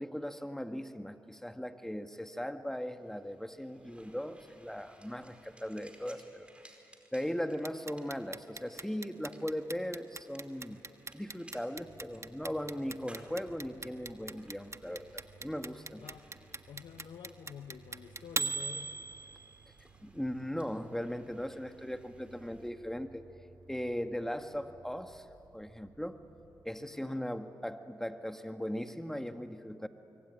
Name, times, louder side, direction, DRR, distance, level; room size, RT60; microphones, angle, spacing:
voice 1, 0.0-6.5 7.1-10.8 11.1-16.0 20.0-23.3 23.7-25.3 25.5-26.2 26.6-29.9, equal, 5° left, 8 dB, 2.0 m, -38 dB
sound 1, 2.9-22.7, right 1 dB, 15° right, 4.8 m, -62 dB
Clock, 7.6-19.6, right 3 dB, 35° right, 1.4 m, -39 dB
sound 2, 11.7-26.7, right 5 dB, 70° right, 3.8 m, -61 dB
voice 2, 16.0-16.3 16.7-19.2 26.8-27.3, left 7 dB, 80° left, 9 dB, 0.9 m, -49 dB
24.5 x 24.5 x 9.8 m, 2.9 s
supercardioid pair, 45°, 8 cm